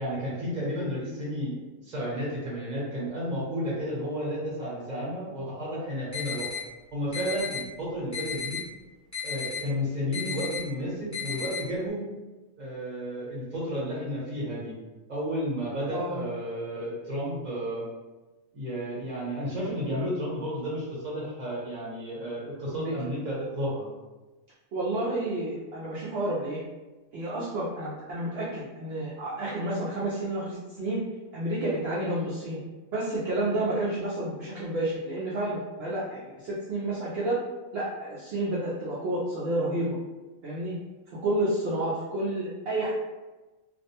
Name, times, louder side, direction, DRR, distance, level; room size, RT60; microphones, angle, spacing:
voice 1, 0.0-6.5 6.9-8.6 9.2-12.1 12.6-14.7 15.1-17.9 18.5-23.9, equal, 35° right, -7 dB, 0.9 m, -32 dB
sound 1, 6.1-6.6 7.1-7.6 8.1-8.6 9.1-9.6 10.1-10.6 11.1-11.6, left 6 dB, 15° left, 0.7 m, -33 dB
voice 2, 15.9-16.2 22.7-22.9 24.7-26.6 27.1-31.0 31.3-32.6 32.9-37.4 37.7-40.0 40.4-40.7 41.2-42.9, right 1 dB, 65° right, -7 dB, 0.7 m, -30 dB
2.5 x 2.1 x 2.8 m, 1.2 s
omnidirectional pair, 1.4 m